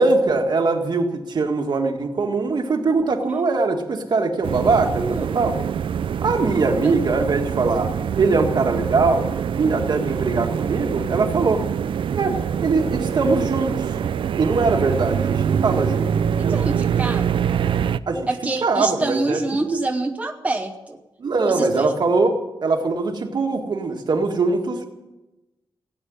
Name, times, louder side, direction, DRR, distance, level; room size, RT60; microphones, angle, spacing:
voice 1, 0.0-5.6 6.2-9.3 9.6-11.6 12.1-13.9 14.4-16.6 18.1-18.3 18.6-19.4 19.7-19.8 21.2-22.3 22.6-24.8, right 3 dB, 60° right, 3 dB, 1.9 m, -21 dB
sound 1, 4.4-18.0, right 8 dB, 85° right, 0.5 m, -24 dB
voice 2, 4.9-5.3 6.8-7.0 16.4-17.5 18.3-21.0 21.5-21.9, right 2 dB, 15° right, 3 dB, 0.9 m, -27 dB
16.5 x 8.9 x 9.4 m, 1.0 s
wide cardioid pair, 160°, 8 cm